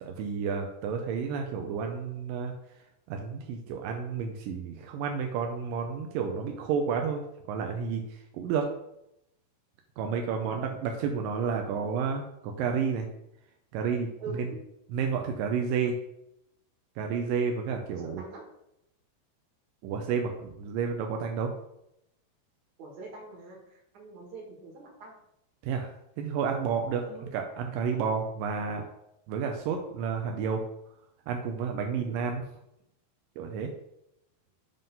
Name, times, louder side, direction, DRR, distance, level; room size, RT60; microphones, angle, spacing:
voice 1, 0.0-2.5 3.1-7.2 7.5-8.7 10.0-13.1 13.7-14.5 14.9-16.0 17.0-18.2 19.8-21.5 25.6-27.0 27.3-28.8 29.3-30.6 31.3-32.4 33.4-33.7, right 6 dB, 85° right, 3 dB, 2.0 m, -31 dB
voice 2, 14.2-14.6 17.7-18.5 22.8-25.1 27.0-27.3 32.0-32.1, right 3 dB, 50° right, -1 dB, 2.7 m, -44 dB
7.7 x 3.7 x 5.4 m, 0.80 s
omnidirectional pair, 4.8 m